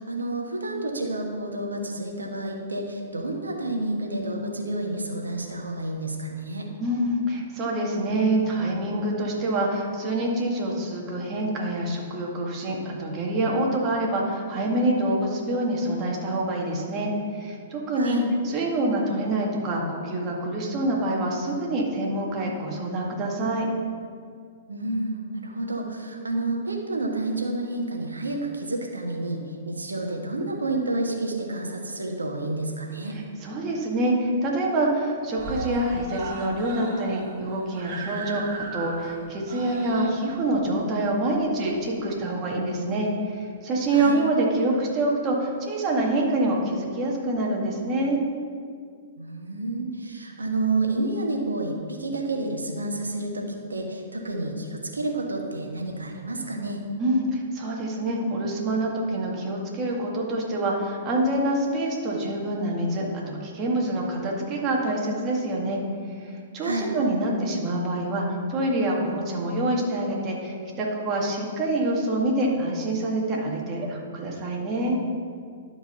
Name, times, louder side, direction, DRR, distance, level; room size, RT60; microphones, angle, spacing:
voice 1, 0.0-6.7 18.0-18.3 24.7-33.2 43.9-44.2 49.2-56.8 66.6-66.9, right 2 dB, 80° right, 1 dB, 1.5 m, -30 dB
voice 2, 6.8-18.2 18.4-23.7 33.4-48.2 57.0-65.8 66.1-75.0, right 1 dB, 30° right, -2 dB, 2.0 m, -26 dB
Screaming, 32.4-33.4 33.7-33.8 34.1-34.2 34.5-35.0 35.3-42.1 43.0-43.1, right 3 dB, 45° right, 1.6 m, -38 dB
11.5 x 5.0 x 5.7 m, 2.1 s
figure-of-eight pair, 110°, 0 cm